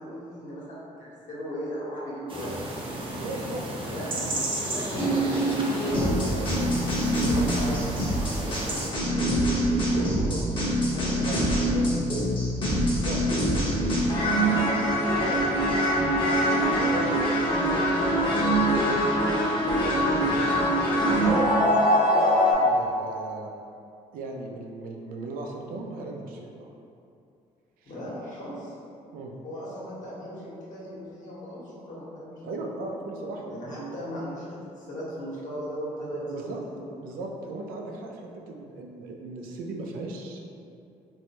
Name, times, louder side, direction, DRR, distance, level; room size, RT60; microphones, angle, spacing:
voice 1, 0.0-2.6 3.8-6.5 7.0-10.5 10.9-11.9 14.0-14.9 27.8-28.7 29.4-32.3 33.5-36.4 36.6-36.9, equal, 60° left, -8 dB, 1.2 m, -37 dB
sound 1, 2.3-8.9, right 1 dB, 35° right, 0.6 m, -33 dB
voice 2, 3.1-3.6 4.0-4.2 11.2-11.6 12.6-13.4 15.2-16.2 16.8-17.4 17.6-21.9 22.5-23.5 24.1-26.7 27.8-27.9 29.1-29.3 32.4-33.9 36.3-36.6 37.0-40.4, right 2 dB, 85° right, 0 dB, 0.5 m, -38 dB
sound 2, 4.9-22.5, equal, 35° left, 0.9 m, -24 dB
3.2 x 2.6 x 2.9 m, 2.6 s
cardioid pair, 90°, 14 cm